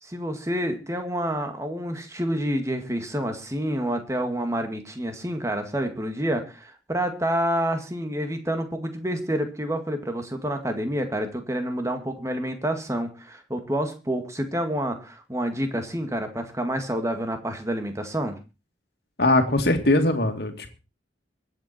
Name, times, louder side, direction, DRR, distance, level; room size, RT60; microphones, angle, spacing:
voice 1, 0.0-18.4, right 1 dB, 15° right, 6 dB, 2.0 m, -28 dB
voice 2, 19.2-20.7, left 1 dB, 60° left, 5 dB, 2.4 m, -21 dB
23.0 x 8.1 x 4.4 m, 0.31 s
head